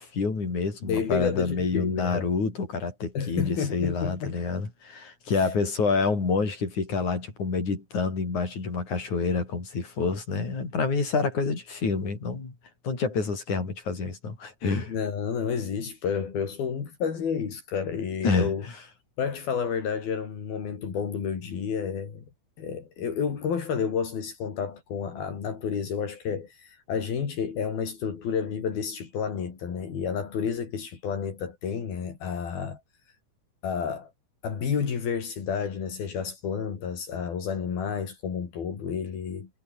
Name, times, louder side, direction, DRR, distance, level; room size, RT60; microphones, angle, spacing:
voice 1, 0.0-12.5 12.8-15.0 18.2-18.8, left 4 dB, 50° left, 7.7 m, -28 dB
voice 2, 0.8-2.3 3.1-4.4 5.3-5.5 14.9-18.7 19.2-22.3 22.6-32.8 33.6-34.1 34.4-39.5, left 6 dB, 80° left, 5.8 m, -30 dB
omnidirectional pair, 4.3 m